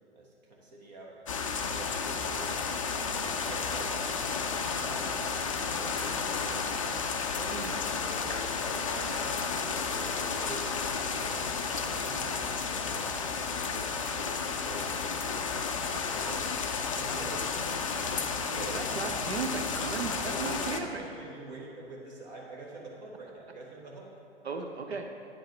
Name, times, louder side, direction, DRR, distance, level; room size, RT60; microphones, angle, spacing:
voice 1, 0.1-1.4 1.7-2.5 3.0-5.3 5.7-7.7 8.0-11.2 11.6-13.3 13.6-17.9 18.4-19.2 20.0-24.1 24.5-24.6, right 2 dB, 40° right, -2 dB, 1.1 m, -46 dB
sound 1, 1.3-20.8, left 5 dB, 30° left, 0.4 m, -32 dB
voice 2, 18.7-21.1 24.4-25.1, right 4 dB, 70° right, 4 dB, 0.7 m, -36 dB
9.1 x 4.5 x 4.5 m, 2.4 s
figure-of-eight pair, 120°, 34 cm